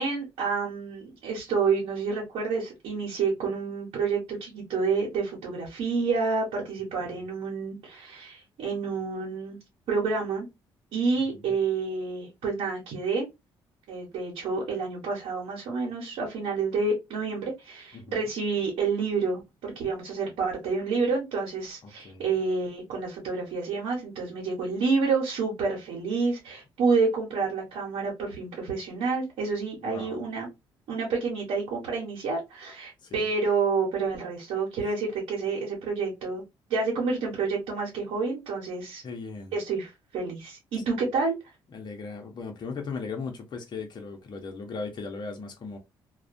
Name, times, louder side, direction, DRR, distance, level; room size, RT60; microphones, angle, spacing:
voice 1, 0.0-9.6 9.9-10.5 10.9-13.3 13.9-30.5 30.9-36.4 36.7-39.0 39.5-41.3, right 4 dB, 80° right, 1.0 m, -29 dB
voice 2, 17.9-18.3 21.8-22.2 29.8-30.2 33.0-33.3 39.0-39.5 41.7-45.8, left 4 dB, 45° left, 0.7 m, -38 dB
2.3 x 2.1 x 2.6 m
supercardioid pair, 75°, 10 cm